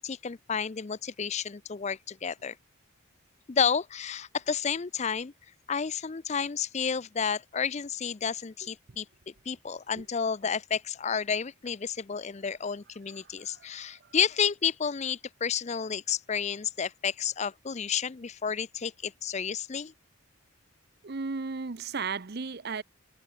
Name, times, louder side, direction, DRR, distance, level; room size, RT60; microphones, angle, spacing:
voice 1, 0.0-2.6 3.5-5.3 5.7-9.1 9.5-19.9, left 7 dB, 30° left, 0.4 m, -31 dB
voice 2, 21.0-22.8, right 4 dB, 45° right, 0.7 m, -34 dB
head